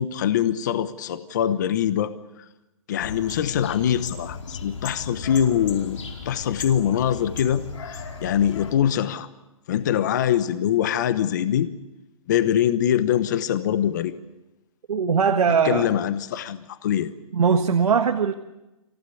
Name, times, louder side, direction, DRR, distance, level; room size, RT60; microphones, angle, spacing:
voice 1, 0.0-2.1 2.9-6.0 6.2-9.3 9.7-11.7 12.3-14.1 15.6-17.1, left 10 dB, 30° left, 13 dB, 1.0 m, -23 dB
sound 1, 3.0-8.7, left 4 dB, 60° left, 4.9 m, -36 dB
voice 2, 14.9-15.9 17.3-18.3, right 6 dB, 85° right, 4 dB, 1.7 m, -20 dB
27.0 x 16.0 x 8.5 m, 1.0 s
hypercardioid pair, 170°, 18 cm